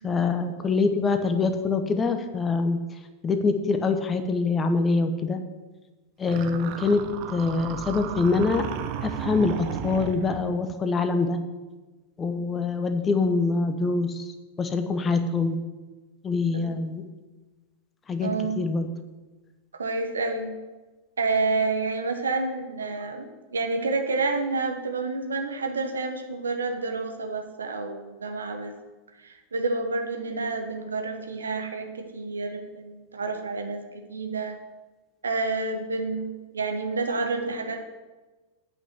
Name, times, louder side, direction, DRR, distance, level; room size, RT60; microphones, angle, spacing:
voice 1, 0.0-2.8 3.2-5.4 6.2-8.7 9.0-11.4 12.2-14.3 14.6-15.6 16.2-17.0 18.1-18.9, left 4 dB, 20° left, 8 dB, 0.9 m, -25 dB
sound 1, 6.3-10.6, right 8 dB, 45° right, 0.8 m, -34 dB
voice 2, 18.2-18.7 19.7-20.5 21.2-28.7 29.2-34.6 35.2-37.9, right 3 dB, 70° right, 5 dB, 1.3 m, -29 dB
8.6 x 5.7 x 8.0 m, 1.2 s
figure-of-eight pair, 90°, 0 cm